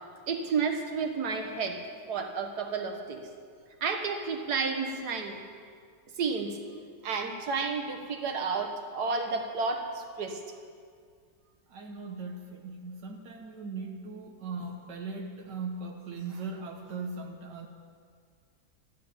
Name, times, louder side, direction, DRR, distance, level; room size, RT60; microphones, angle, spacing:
voice 1, 0.3-1.8 2.1-3.2 3.8-5.4 6.2-6.6 7.0-10.4, right 4 dB, 70° right, 4 dB, 2.0 m, -31 dB
voice 2, 11.7-17.7, right 4 dB, 85° right, 2 dB, 1.8 m, -39 dB
13.0 x 12.0 x 9.1 m, 2.1 s
omnidirectional pair, 1.8 m